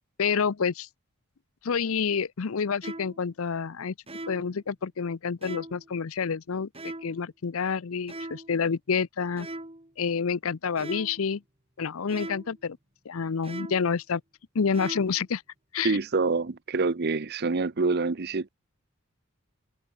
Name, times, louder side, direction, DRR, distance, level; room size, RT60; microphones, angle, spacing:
voice 1, 0.2-0.9 1.6-3.9 4.3-9.5 10.0-11.4 11.8-12.8 13.1-14.2 14.5-15.4 15.7-16.0, left 6 dB, 70° left, 0.6 m, -28 dB
sound 1, 2.8-3.3 4.1-4.6 5.4-5.9 6.7-7.2 8.1-8.6 9.4-9.9 10.8-11.3 12.1-12.6 13.4-14.0 14.7-15.2, right 2 dB, 25° right, 2.7 m, -40 dB
voice 2, 15.8-18.5, right 3 dB, 45° right, 0.7 m, -26 dB
head